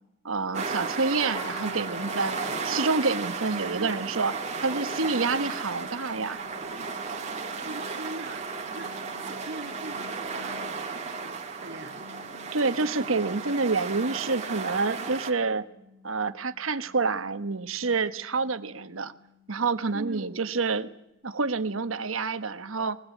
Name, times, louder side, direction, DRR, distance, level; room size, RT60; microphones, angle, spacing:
voice 1, 0.2-2.4 2.6-4.3 4.6-6.4 12.5-15.6 16.0-19.1 19.5-20.9 21.2-23.0, right 4 dB, 85° right, 11 dB, 1.2 m, -28 dB
sound 1, 0.5-15.3, right 4 dB, 35° right, 2.3 m, -34 dB
sound 2, 1.2-21.0, left 2 dB, 25° left, 4.2 m, -48 dB
voice 2, 3.6-4.0 7.6-12.0 19.9-20.4, right 2 dB, 60° right, 7 dB, 1.7 m, -42 dB
21.5 x 20.0 x 8.4 m, 0.85 s
head